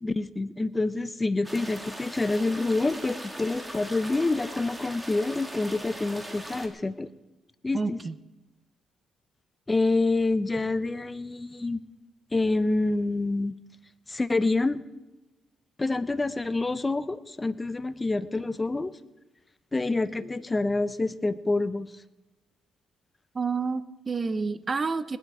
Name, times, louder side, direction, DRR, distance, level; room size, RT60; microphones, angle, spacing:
voice 1, 0.0-7.1 7.6-8.0 9.7-11.8 12.3-13.5 14.1-14.8 15.8-18.9 19.7-21.9, left 2 dB, 20° left, 15 dB, 0.8 m, -27 dB
sound 1, 1.4-6.7, right 1 dB, 10° right, 2.3 m, -40 dB
voice 2, 7.7-8.1 23.3-25.2, right 4 dB, 30° right, 13 dB, 0.8 m, -29 dB
19.5 x 11.0 x 5.0 m, 1.1 s
cardioid pair, 90°, 0 cm